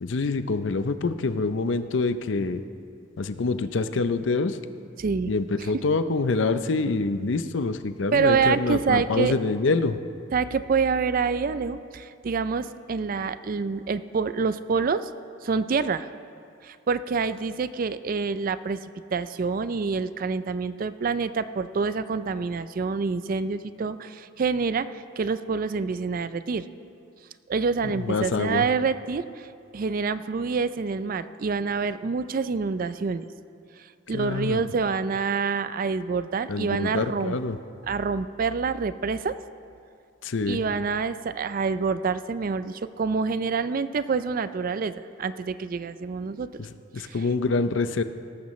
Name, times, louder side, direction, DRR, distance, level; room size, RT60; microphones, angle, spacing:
voice 1, 0.0-2.6 3.2-4.6 5.3-10.0 28.0-28.7 34.1-34.6 36.5-37.6 40.2-40.6 46.6-48.0, left 3 dB, 65° left, 11 dB, 0.5 m, -26 dB
voice 2, 5.0-5.3 8.1-9.3 10.3-15.1 15.4-16.1 16.6-18.8 19.1-26.6 27.5-29.5 29.7-33.3 34.1-37.4 37.9-39.4 40.5-46.6 47.0-47.2, right 5 dB, 45° right, 13 dB, 0.4 m, -27 dB
18.0 x 13.5 x 3.1 m, 2.4 s
head